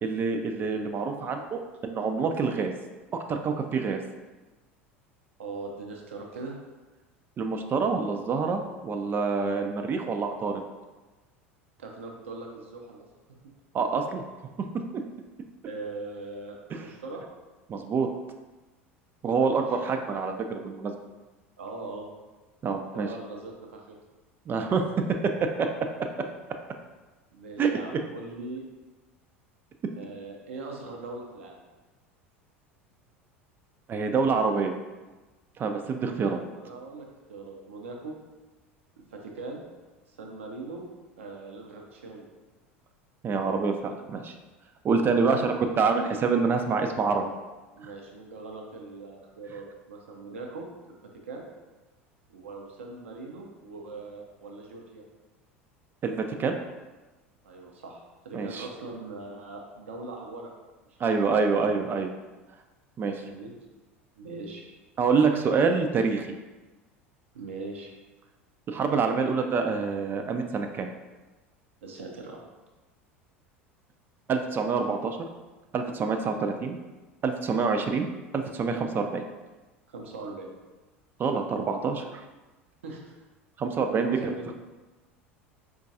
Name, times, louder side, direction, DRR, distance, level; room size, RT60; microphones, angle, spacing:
voice 1, 0.0-2.7 3.1-4.0 7.4-10.6 13.7-14.2 16.7-16.8 17.7-18.1 19.2-20.9 22.6-23.1 24.5-24.8 25.2-26.1 27.6-27.7 33.9-34.7 35.6-36.4 43.2-44.3 44.8-47.3 56.0-56.6 58.3-58.7 61.0-62.1 63.0-63.1 65.0-66.3 68.7-70.9 74.3-75.2 75.7-76.8 77.2-78.1 78.3-79.2 81.2-82.2 83.6-84.2, right 5 dB, 30° right, 5 dB, 0.3 m, -26 dB
voice 2, 5.4-6.6 11.8-13.5 15.7-17.2 19.5-19.6 21.6-22.1 22.9-24.0 27.3-28.6 30.0-31.6 36.6-38.2 39.1-39.6 40.1-40.9 41.2-42.3 45.3-45.5 47.7-50.9 51.2-51.5 52.3-55.0 57.4-60.5 61.0-61.3 63.1-63.5 64.2-64.7 67.3-67.9 71.8-72.4 79.9-80.5 82.8-83.2 84.0-84.5, right 3 dB, 75° right, 1 dB, 0.6 m, -41 dB
4.4 x 2.3 x 2.6 m, 1.2 s
figure-of-eight pair, 75°, 7 cm